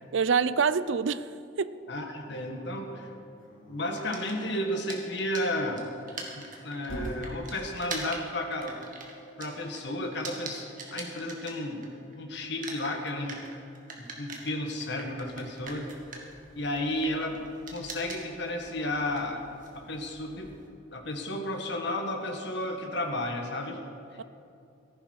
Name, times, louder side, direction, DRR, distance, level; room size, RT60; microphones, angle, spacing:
voice 1, 0.1-1.7 24.2-24.3, right 6 dB, 75° right, 15 dB, 0.5 m, -26 dB
voice 2, 1.9-3.1 3.7-5.9 6.4-8.8 9.4-11.8 12.2-13.4 14.0-15.9 16.6-17.4 17.7-19.4 19.7-20.5 20.9-23.8, left 1 dB, 60° left, 3 dB, 1.9 m, -33 dB
Dog, 2.2-3.8 5.4-7.2, right 1 dB, 80° left, 4.1 m, -43 dB
sound 1, 4.0-12.1 12.4-20.7, right 4 dB, 45° right, 2.2 m, -43 dB
17.0 x 14.5 x 4.8 m, 2.6 s
head